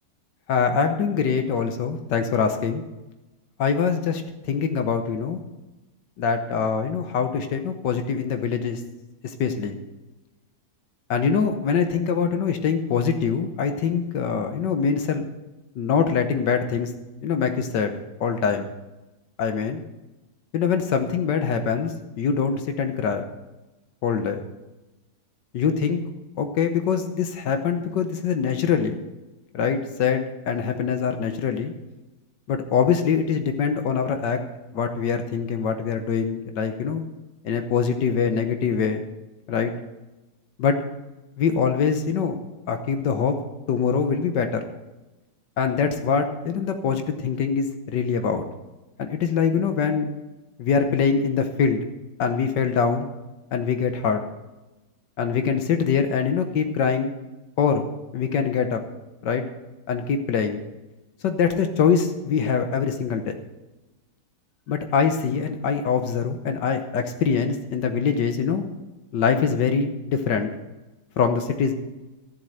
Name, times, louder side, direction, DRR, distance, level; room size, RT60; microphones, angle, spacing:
voice 1, 0.5-2.8 3.6-5.4 6.2-8.8 9.2-9.7 11.1-15.2 15.8-16.9 17.2-17.9 18.2-18.7 19.4-19.8 20.5-23.3 24.0-24.4 25.5-26.0 26.4-29.0 29.5-31.7 32.5-34.4 34.7-37.0 37.4-39.0 39.5-39.7 40.6-40.8 41.4-42.4 42.7-43.3 43.7-44.6 45.6-48.4 49.0-50.1 50.6-51.9 52.2-53.1 53.5-54.2 55.2-57.1 57.6-57.8 58.1-58.8 59.2-59.4 59.9-60.6 61.2-63.3 64.7-68.6 69.1-70.5 71.2-71.7, left 6 dB, 75° left, 7 dB, 1.6 m, -23 dB
13.5 x 7.5 x 7.8 m, 1.1 s
omnidirectional pair, 1.9 m